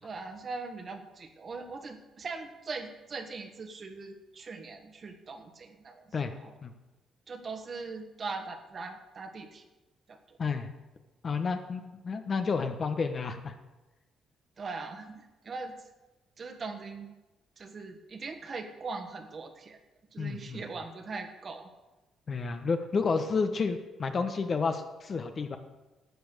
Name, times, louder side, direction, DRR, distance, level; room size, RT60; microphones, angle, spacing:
voice 1, 0.0-6.1 6.4-6.5 7.3-9.6 10.1-10.4 14.6-15.7 16.4-17.1 17.6-19.8 20.1-21.7, right 4 dB, 45° right, 6 dB, 1.4 m, -40 dB
voice 2, 11.2-13.5 20.2-20.6 22.3-25.6, left 4 dB, 45° left, 7 dB, 1.1 m, -30 dB
11.5 x 7.2 x 6.7 m, 1.1 s
cardioid pair, 90°, 0 cm